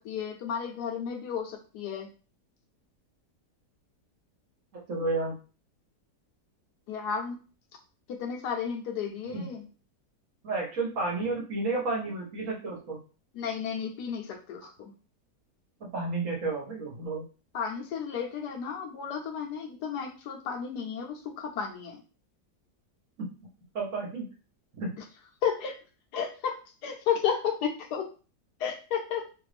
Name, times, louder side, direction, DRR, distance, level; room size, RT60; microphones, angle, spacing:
voice 1, 0.0-2.1 6.9-7.4 8.1-9.6 13.3-14.6 17.5-22.0 25.4-25.8 26.1-28.1 28.6-29.3, left 7 dB, 75° left, 3 dB, 1.2 m, -32 dB
voice 2, 4.7-5.4 9.2-9.5 10.4-13.0 14.6-14.7 15.8-17.2 23.2-23.3 23.7-24.3 24.8-24.9, right 3 dB, 55° right, -2 dB, 1.3 m, -31 dB
3.2 x 2.5 x 3.3 m, 0.36 s
omnidirectional pair, 1.8 m